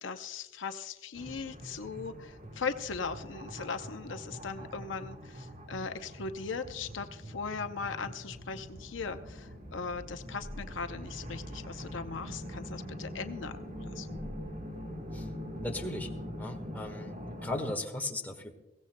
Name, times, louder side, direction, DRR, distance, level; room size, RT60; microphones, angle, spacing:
voice 1, 0.0-14.1, left 5 dB, 70° left, 8 dB, 0.7 m, -39 dB
sound 1, 1.1-17.7, equal, 45° right, 1.9 m, -44 dB
sound 2, 1.3-2.2 2.4-5.9 6.2-16.3, equal, 75° right, 5.2 m, -48 dB
voice 2, 15.6-16.1 16.4-17.2 17.4-18.5, left 2 dB, 10° left, 2 dB, 1.4 m, -36 dB
22.0 x 16.5 x 2.2 m, 1.0 s
head